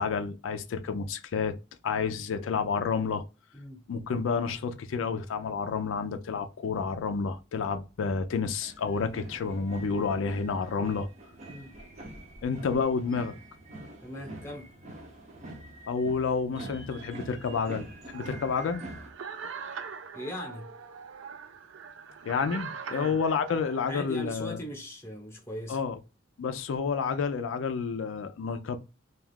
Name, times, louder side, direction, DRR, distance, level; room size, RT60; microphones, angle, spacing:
voice 1, 0.0-1.6 1.8-3.2 3.9-11.1 12.4-13.3 15.9-17.9 18.1-18.8 22.2-24.6 25.7-26.0 26.4-28.8, left 5 dB, 80° left, 0.4 m, -30 dB
sound 1, 8.6-19.1, right 1 dB, 35° right, 0.6 m, -45 dB
voice 2, 14.0-14.7 20.1-20.7 22.9-23.2 23.8-25.8, equal, 15° left, 0.8 m, -40 dB
sound 2, 18.1-23.8, right 6 dB, 80° right, 0.4 m, -42 dB
2.3 x 2.3 x 3.3 m
head